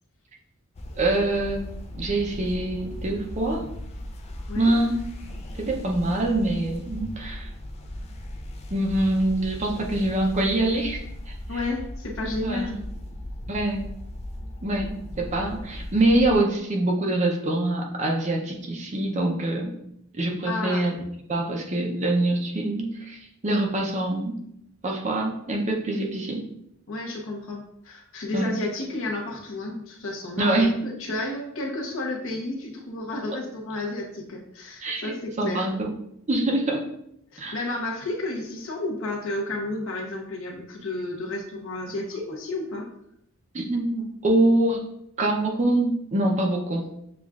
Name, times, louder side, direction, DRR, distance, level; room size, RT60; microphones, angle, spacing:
sound 1, 0.7-16.4, left 1 dB, 30° left, 0.4 m, -37 dB
voice 1, 1.0-1.6 1.9-3.6 4.5-5.0 5.6-7.5 8.7-11.0 11.3-11.4 12.4-12.8 13.5-13.9 14.6-19.7 20.1-21.0 21.3-24.4 24.8-26.4 28.3-28.5 30.4-30.8 34.8-35.9 36.3-36.8 37.4-37.6 43.5-44.8 45.2-46.8, right 2 dB, 30° right, 0 dB, 0.6 m, -24 dB
voice 2, 11.5-12.7 20.4-20.9 26.9-35.7 37.3-42.9, left 2 dB, 60° left, 0 dB, 0.9 m, -31 dB
7.0 x 2.4 x 2.4 m, 0.76 s
head